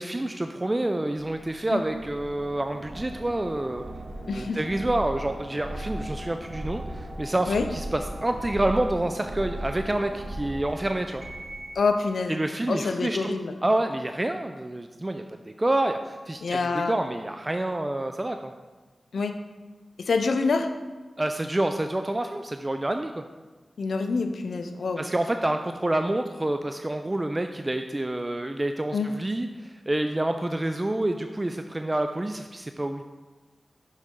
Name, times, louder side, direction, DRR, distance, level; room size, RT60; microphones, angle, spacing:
voice 1, 0.0-3.8 4.3-11.2 12.3-13.4 13.6-15.2 15.6-18.5 21.2-23.2 25.0-33.0, right 1 dB, 30° right, 6 dB, 0.4 m, -28 dB
sound 1, 1.2-11.8, right 1 dB, 55° right, 1.0 m, -37 dB
voice 2, 4.3-4.6 7.5-7.7 11.8-12.4 12.7-13.5 16.4-17.0 19.1-19.3 20.0-20.7 23.8-25.0 28.9-29.1, left 4 dB, 85° left, 7 dB, 0.5 m, -26 dB
6.6 x 6.3 x 3.7 m, 1.3 s
cardioid pair, 45°, 0 cm